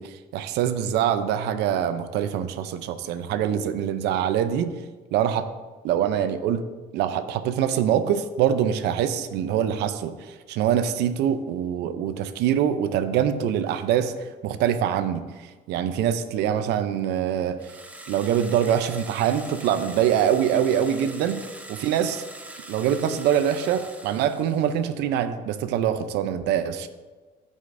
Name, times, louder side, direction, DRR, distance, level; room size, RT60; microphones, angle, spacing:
voice 1, 0.0-4.7 5.1-5.5 5.8-6.7 6.9-17.8 18.1-21.4 21.7-22.2 22.7-26.9, right 9 dB, 85° right, 10 dB, 0.6 m, -24 dB
sound 1, 17.6-24.9, right 1 dB, 10° right, 0.8 m, -43 dB
13.5 x 5.0 x 2.6 m, 1.3 s
cardioid pair, 110°, 17 cm